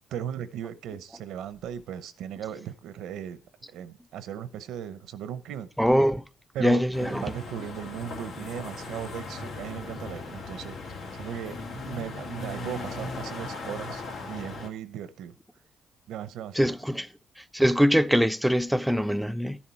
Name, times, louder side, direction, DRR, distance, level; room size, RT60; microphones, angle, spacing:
voice 1, 0.1-3.4 3.7-5.7 6.5-10.8 11.1-11.6 11.8-15.3 16.1-16.7, right 9 dB, 85° right, 0.8 m, -37 dB
voice 2, 5.8-6.2 6.6-7.2 16.6-17.1 17.5-19.6, equal, ahead, 0.5 m, -23 dB
sound 1, 6.9-14.7, left 3 dB, 80° left, 2.2 m, -38 dB
12.5 x 7.3 x 4.5 m
cardioid pair, 90°, 0 cm